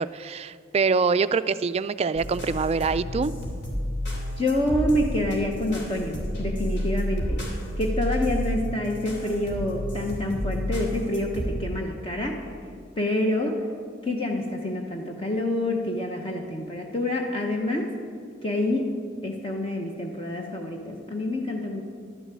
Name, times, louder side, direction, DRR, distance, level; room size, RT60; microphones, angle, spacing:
voice 1, 0.0-3.3, right 5 dB, 35° right, 14 dB, 0.3 m, -24 dB
sound 1, 2.1-11.5, equal, 65° left, 3.2 m, -31 dB
voice 2, 4.4-7.4 7.8-12.4 13.0-13.6 14.0-17.9 18.4-18.9 19.2-21.8, left 1 dB, 30° left, 1 dB, 0.9 m, -27 dB
12.0 x 7.1 x 8.4 m, 2.1 s
head